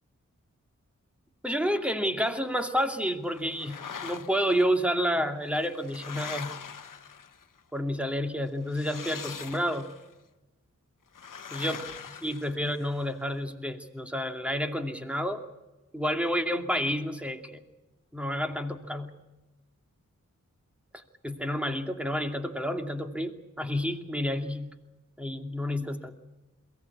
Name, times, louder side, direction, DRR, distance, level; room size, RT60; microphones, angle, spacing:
voice 1, 1.4-6.5 7.7-9.9 11.5-11.8 12.2-15.4 15.9-17.6 18.1-19.1 20.9-24.7 25.2-26.2, equal, 5° right, 5 dB, 2.5 m, -30 dB
sound 1, 3.4-4.6 5.4-7.6 8.7-10.1 11.1-13.0, left 6 dB, 85° left, 1.0 m, -42 dB
22.5 x 18.0 x 8.4 m, 1.1 s
cardioid pair, 50°, 31 cm